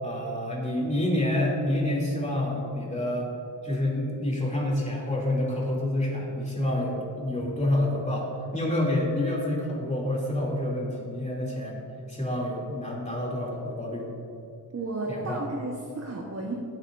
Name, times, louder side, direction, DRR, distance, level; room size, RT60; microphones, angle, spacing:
voice 1, 0.0-3.3 3.6-8.3 8.5-11.8 12.1-14.0 15.1-15.4, left 1 dB, 15° left, -4 dB, 2.8 m, -28 dB
voice 2, 14.7-16.5, right 2 dB, 35° right, -2 dB, 1.3 m, -33 dB
18.0 x 8.8 x 2.6 m, 2.6 s
wide cardioid pair, 100°, 42 cm